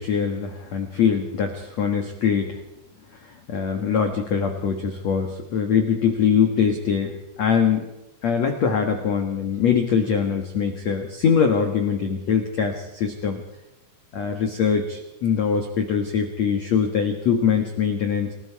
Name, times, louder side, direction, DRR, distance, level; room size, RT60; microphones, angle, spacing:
voice 1, 0.0-2.6 3.1-7.9 8.2-13.4 14.1-18.3, left 6 dB, 90° left, 4 dB, 1.5 m, -23 dB
30.0 x 19.0 x 4.8 m, 0.97 s
omnidirectional pair, 5.9 m